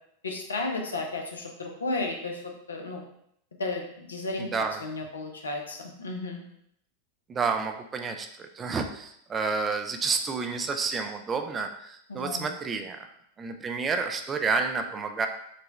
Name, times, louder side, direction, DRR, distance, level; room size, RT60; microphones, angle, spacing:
voice 1, 0.2-2.4 2.7-3.0 3.6-4.5 4.8-6.4 12.1-12.5, left 2 dB, 70° left, 2 dB, 0.6 m, -33 dB
voice 2, 4.4-4.8 7.3-13.0 13.4-15.3, right 4 dB, 20° right, 5 dB, 0.3 m, -30 dB
4.0 x 2.2 x 3.0 m, 0.72 s
figure-of-eight pair, 90°, 0 cm